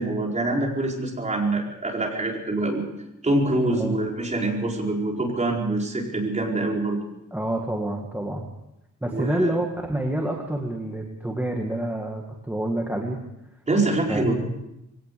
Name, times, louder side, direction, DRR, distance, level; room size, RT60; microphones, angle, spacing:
voice 1, 0.0-2.8 3.2-7.0 9.1-9.6 13.7-14.3, right 2 dB, 20° right, -1 dB, 4.8 m, -25 dB
voice 2, 7.3-8.4 9.0-13.2 14.1-14.3, right 1 dB, 5° right, 0 dB, 2.0 m, -28 dB
22.5 x 18.0 x 6.9 m, 0.88 s
wide cardioid pair, 165°, 32 cm